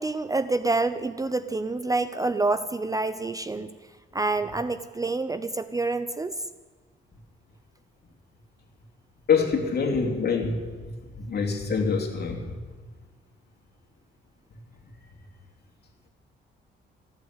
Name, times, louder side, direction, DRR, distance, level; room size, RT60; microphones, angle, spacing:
voice 1, 0.0-3.7 4.1-6.3, right 3 dB, 15° right, 12 dB, 0.5 m, -27 dB
voice 2, 9.3-10.6 11.2-12.6, left 5 dB, 55° left, 1 dB, 2.9 m, -25 dB
15.5 x 8.1 x 9.6 m, 1.4 s
cardioid pair, 90°, 20 cm